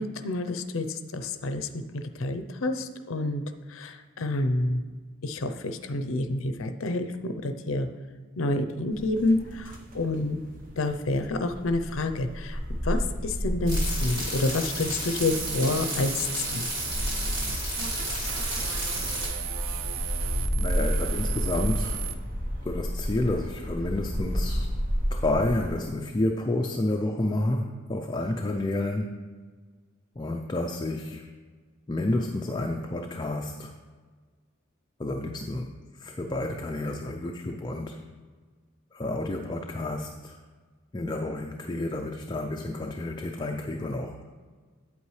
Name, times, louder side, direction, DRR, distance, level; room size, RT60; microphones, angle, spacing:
voice 1, 0.0-3.4 3.7-4.8 5.2-7.9 8.4-10.4 10.8-16.6, left 2 dB, 65° left, 8 dB, 0.6 m, -29 dB
sound 1, 8.9-25.7, equal, 40° right, 1.0 m, -32 dB
sound 2, 13.7-19.3, equal, 20° right, 2.6 m, -33 dB
sound 3, 15.2-22.1, right 9 dB, 65° right, 0.5 m, -36 dB
voice 2, 20.6-22.1 22.6-24.7 25.1-29.2 30.2-31.2 31.9-33.7 35.0-38.0 38.9-40.4 40.9-44.2, left 2 dB, 20° left, 2 dB, 0.4 m, -30 dB
8.8 x 8.5 x 3.2 m, 1.5 s
head